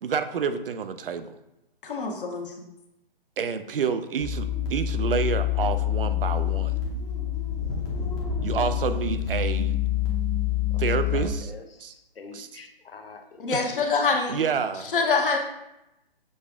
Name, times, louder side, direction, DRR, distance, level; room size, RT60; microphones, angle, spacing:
voice 1, 0.0-1.3 3.4-6.7 8.4-9.8 10.8-11.5 11.8-11.9 12.3-12.5 13.5-13.6 14.3-14.9, right 6 dB, 70° right, 0.5 m, -28 dB
voice 2, 1.8-2.7 13.4-14.4 14.9-15.4, left 4 dB, 65° left, 0.9 m, -25 dB
sound 1, 4.2-11.3, left 10 dB, 15° left, 0.6 m, -27 dB
voice 3, 10.7-13.5 13.7-13.9 15.1-15.2, left 4 dB, 85° left, 0.7 m, -45 dB
6.4 x 2.4 x 3.3 m
hypercardioid pair, 145°, 29 cm